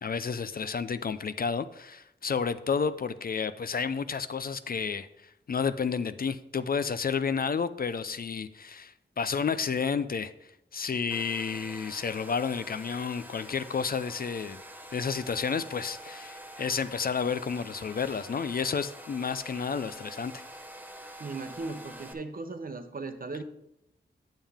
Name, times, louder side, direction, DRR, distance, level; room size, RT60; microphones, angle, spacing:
voice 1, 0.0-10.3 10.7-14.6 14.9-20.4, left 6 dB, 50° left, 13 dB, 0.4 m, -31 dB
Domestic sounds home sounds, 11.1-22.1, equal, 10° right, 0.7 m, -46 dB
voice 2, 21.2-23.4, right 3 dB, 50° right, 8 dB, 0.8 m, -37 dB
9.0 x 7.2 x 3.5 m, 0.82 s
wide cardioid pair, 95°, 20 cm